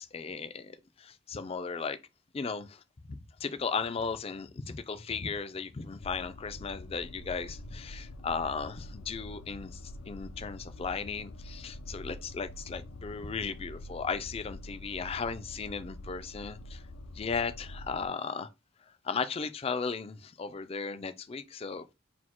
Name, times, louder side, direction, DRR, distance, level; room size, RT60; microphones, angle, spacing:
voice 1, 0.0-2.0 2.3-2.8 3.1-16.9 17.1-18.5 19.0-21.9, left 5 dB, 30° left, 0.3 m, -36 dB
sound 1, 6.0-18.1, left 1 dB, 90° left, 0.5 m, -45 dB
4.2 x 2.2 x 4.3 m
head